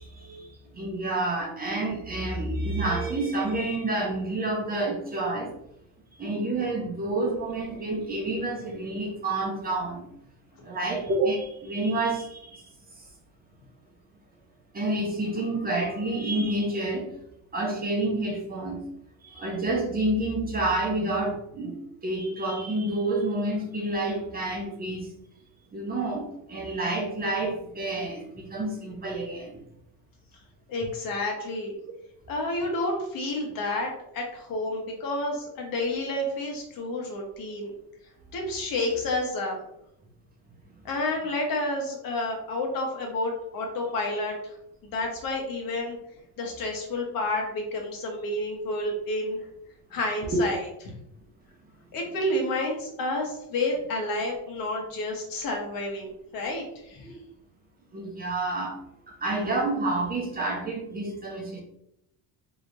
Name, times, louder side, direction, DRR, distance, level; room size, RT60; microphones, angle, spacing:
voice 1, 0.0-5.6 6.1-10.1 10.6-12.7 14.7-17.1 17.5-18.8 19.2-25.1 25.7-29.6 50.3-50.4 57.0-57.1 57.9-58.8 59.1-61.6, right 2 dB, 25° right, -1 dB, 0.8 m, -29 dB
voice 2, 30.7-31.7 32.3-37.7 38.3-39.6 40.8-44.6 44.8-46.0 46.4-49.4 49.9-50.6 51.9-57.1, left 2 dB, 60° left, 1 dB, 1.1 m, -30 dB
3.3 x 3.0 x 2.6 m, 0.78 s
cardioid pair, 125°, 38 cm